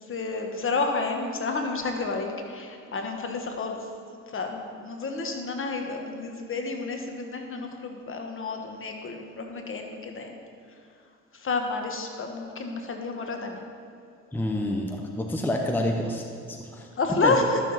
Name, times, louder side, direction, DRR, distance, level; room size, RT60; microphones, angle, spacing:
voice 1, 0.1-3.8 4.3-10.4 11.3-13.6 17.0-17.6, left 3 dB, 45° left, 3 dB, 1.3 m, -30 dB
voice 2, 14.3-16.2 16.5-16.9 17.2-17.4, left 1 dB, 5° left, 2 dB, 0.7 m, -28 dB
12.0 x 6.9 x 4.1 m, 2.4 s
cardioid pair, 90°, 30 cm